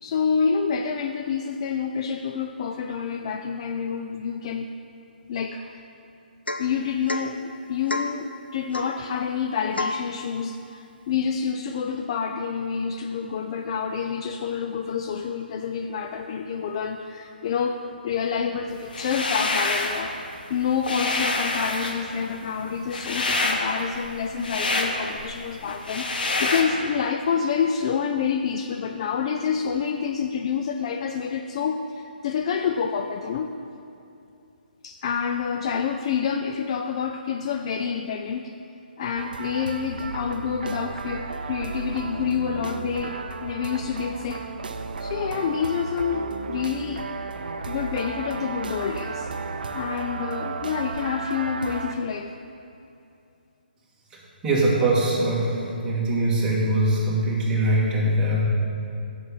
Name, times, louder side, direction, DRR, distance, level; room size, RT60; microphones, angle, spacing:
voice 1, 0.0-4.7 5.3-5.8 6.6-20.2 20.5-33.5 34.8-38.5 39.0-44.5 45.0-47.1 47.7-49.3 49.7-52.4, left 6 dB, 35° left, 5 dB, 0.3 m, -28 dB
Domestic sounds home sounds / Chink clink / Drip, 6.5-6.8 7.1-7.3 7.9-8.2 8.7-9.0 9.8-10.1, left 2 dB, 85° left, 0.6 m, -29 dB
sound 1, 18.9-20.0 20.4-26.6, left 2 dB, 60° left, 1.0 m, -27 dB
sound 2, 39.2-51.9, right 4 dB, 60° right, 0.5 m, -34 dB
voice 2, 54.4-55.6 55.8-58.4, right 1 dB, 10° right, -5 dB, 1.5 m, -22 dB
6.4 x 5.9 x 7.0 m, 2.7 s
figure-of-eight pair, 140°, 5 cm